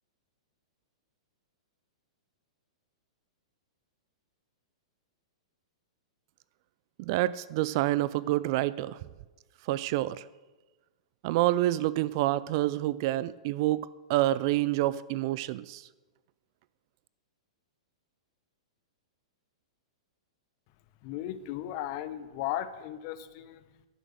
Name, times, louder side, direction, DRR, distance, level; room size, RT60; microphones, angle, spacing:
voice 1, 7.0-9.0 9.7-10.2 11.2-15.8, right 16 dB, 50° right, 18 dB, 0.4 m, -28 dB
voice 2, 21.0-23.6, left 12 dB, 45° left, 13 dB, 0.8 m, -36 dB
10.0 x 7.5 x 6.5 m, 1.2 s
hypercardioid pair, 110°, 3 cm